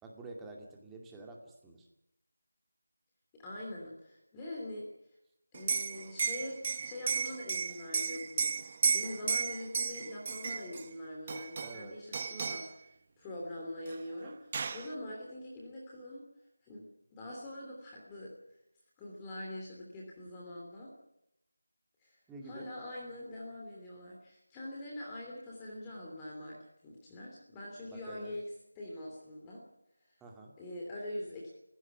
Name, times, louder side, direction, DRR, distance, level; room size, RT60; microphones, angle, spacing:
voice 1, 0.0-1.9 11.6-12.0 22.3-22.7 27.9-28.3 30.2-30.5, right 2 dB, 5° right, 1 dB, 2.3 m, -48 dB
voice 2, 3.4-4.9 5.5-16.2 16.6-16.9 17.1-18.3 19.0-20.9 22.0-26.6 26.8-29.6 30.6-31.5, left 1 dB, 10° left, -3 dB, 2.9 m, -44 dB
Liquid, 5.5-10.9 11.3-11.8 12.1-12.7 13.9-14.0 14.2-14.9, right 5 dB, 25° right, 0.8 m, -33 dB
28.5 x 16.5 x 6.1 m, 0.82 s
figure-of-eight pair, 170°, 0 cm